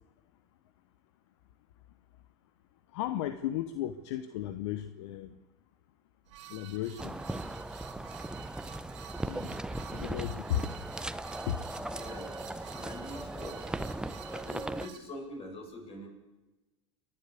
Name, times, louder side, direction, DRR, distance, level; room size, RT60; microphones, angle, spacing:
voice 1, 2.9-5.3 6.5-7.2 9.2-9.6 9.9-10.7 11.5-11.6, left 11 dB, 70° left, 11 dB, 1.0 m, -35 dB
sound 1, 6.3-15.0, right 11 dB, 75° right, 2.8 m, -50 dB
sound 2, 7.0-14.9, right 1 dB, 5° right, 0.8 m, -38 dB
voice 2, 11.9-13.8 14.3-16.1, left 1 dB, 40° left, 2 dB, 7.9 m, -45 dB
29.0 x 11.5 x 8.4 m, 1.1 s
hypercardioid pair, 80°, 15 cm